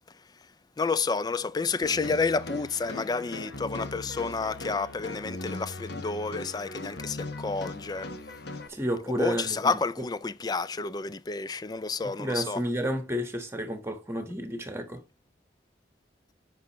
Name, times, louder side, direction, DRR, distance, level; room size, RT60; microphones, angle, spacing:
voice 1, 0.8-8.1 9.1-12.6, left 4 dB, 20° left, 0.3 m, -30 dB
sound 1, 1.8-8.7, left 2 dB, 65° left, 1.1 m, -39 dB
voice 2, 8.7-9.7 12.0-15.0, equal, 15° right, 1.3 m, -31 dB
9.4 x 5.4 x 3.1 m
head